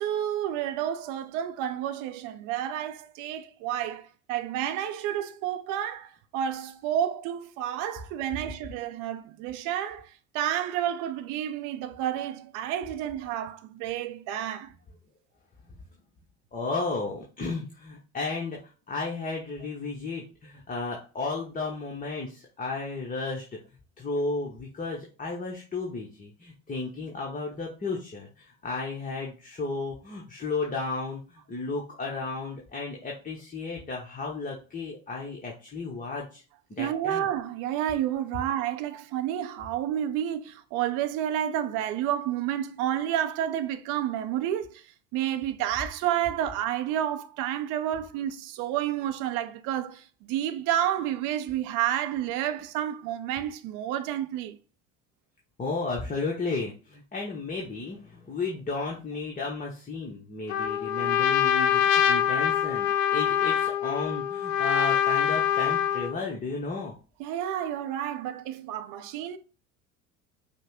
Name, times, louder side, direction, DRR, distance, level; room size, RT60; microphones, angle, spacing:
voice 1, 0.0-14.7 36.8-44.8 45.1-54.6 67.2-69.4, right 11 dB, 50° right, 0.5 m, -30 dB
voice 2, 16.5-18.6 18.9-23.6 24.0-36.4 36.7-37.3 55.6-66.9, left 3 dB, 20° left, 1.0 m, -33 dB
Trumpet, 60.5-66.2, left 9 dB, 65° left, 0.5 m, -24 dB
5.3 x 2.2 x 3.5 m
figure-of-eight pair, 65°, 41 cm